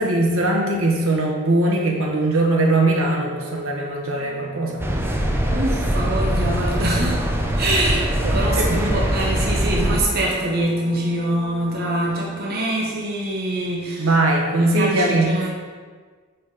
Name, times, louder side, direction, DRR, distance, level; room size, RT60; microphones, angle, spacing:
voice 1, 0.0-4.8 8.2-9.0 14.0-15.3, right 2 dB, 70° right, 0 dB, 1.1 m, -20 dB
Brass instrument, 4.0-12.9, right 2 dB, 50° left, 1.0 m, -42 dB
sound 1, 4.8-10.0, equal, 10° right, 0.5 m, -22 dB
voice 2, 5.5-7.3 7.6-14.1 14.6-15.5, right 1 dB, 45° right, -3 dB, 0.9 m, -24 dB
5.0 x 4.6 x 5.1 m, 1.5 s
head